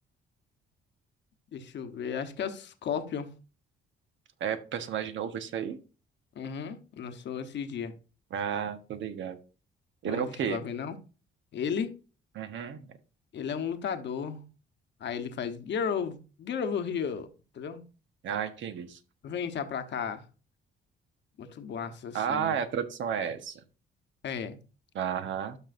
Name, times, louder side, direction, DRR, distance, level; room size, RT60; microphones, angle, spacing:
voice 1, 1.5-3.3 6.4-7.9 10.0-11.0 11.5-11.9 13.3-14.4 15.0-17.3 17.5-17.8 19.2-20.2 21.4-22.6 24.2-24.6, left 7 dB, 65° left, 1.1 m, -34 dB
voice 2, 4.4-5.8 8.3-9.4 10.0-10.6 12.3-12.9 18.2-19.0 22.1-23.6 24.9-25.6, right 8 dB, 70° right, 1.3 m, -32 dB
12.5 x 5.4 x 2.6 m
cardioid pair, 90°, 20 cm